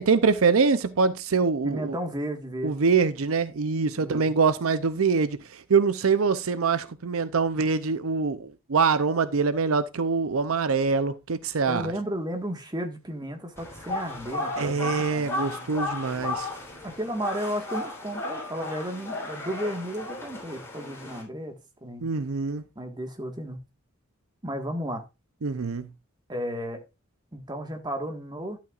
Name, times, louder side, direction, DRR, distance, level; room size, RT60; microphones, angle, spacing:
voice 1, 0.0-1.9 2.6-11.9 14.6-16.5 22.0-22.6 25.4-25.9, right 5 dB, 75° right, 0.6 m, -24 dB
voice 2, 1.6-2.8 4.0-4.3 11.7-15.7 16.8-22.1 22.7-23.6 24.4-25.0 26.3-26.8 27.3-28.6, equal, 20° right, 1.6 m, -33 dB
sound 1, 13.6-21.2, left 2 dB, 15° left, 3.6 m, -34 dB
12.0 x 8.4 x 2.5 m
head